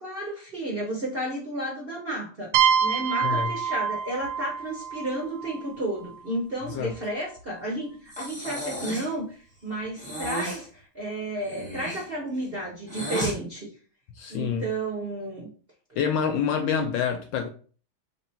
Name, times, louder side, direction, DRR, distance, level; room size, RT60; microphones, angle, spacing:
voice 1, 0.0-2.5 2.8-13.7 14.3-15.5, right 1 dB, 45° right, 0.7 m, -32 dB
sound 1, 2.5-6.2, right 7 dB, 75° right, 1.3 m, -26 dB
voice 2, 3.2-3.5 6.7-6.9 14.2-14.7 16.0-17.5, left 7 dB, 75° left, 1.1 m, -27 dB
Breathing, 8.1-9.2 10.0-10.6 11.4-13.4, right 1 dB, 10° left, 0.3 m, -34 dB
3.1 x 3.0 x 4.3 m
omnidirectional pair, 2.3 m